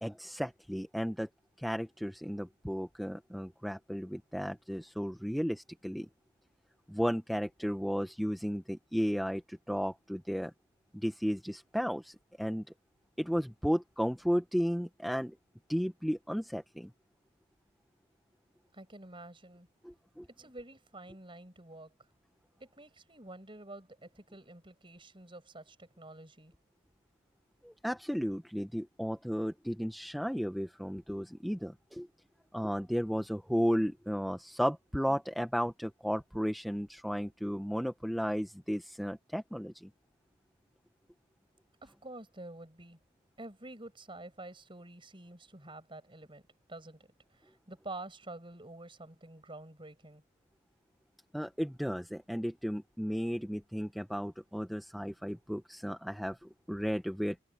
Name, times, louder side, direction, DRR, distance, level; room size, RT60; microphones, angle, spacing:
voice 1, 0.0-1.3 1.6-6.1 6.9-10.5 10.9-12.6 13.2-15.3 15.7-16.9 19.8-20.3 27.6-32.1 32.5-39.9 51.3-57.4, equal, ahead, 0.7 m, -34 dB
voice 2, 18.7-19.7 20.4-21.9 22.6-26.5 41.8-43.0 43.4-46.4 46.7-47.0 47.7-50.2, right 2 dB, 25° right, 7.7 m, -48 dB
head